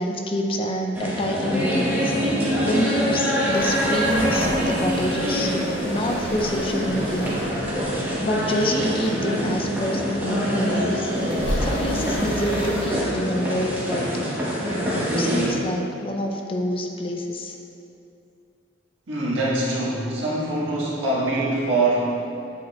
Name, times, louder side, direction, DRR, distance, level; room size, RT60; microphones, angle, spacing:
voice 1, 0.0-2.1 2.6-5.6 5.8-7.3 8.2-11.1 11.6-14.3 14.9-17.5, equal, 30° left, 2 dB, 0.4 m, -27 dB
sound 1, 0.9-15.5, equal, 10° right, 1.0 m, -25 dB
sound 2, 3.5-12.9, equal, 70° left, 1.1 m, -33 dB
voice 2, 19.1-22.1, right 2 dB, 90° right, -6 dB, 1.5 m, -23 dB
8.3 x 5.0 x 2.3 m, 2.6 s
head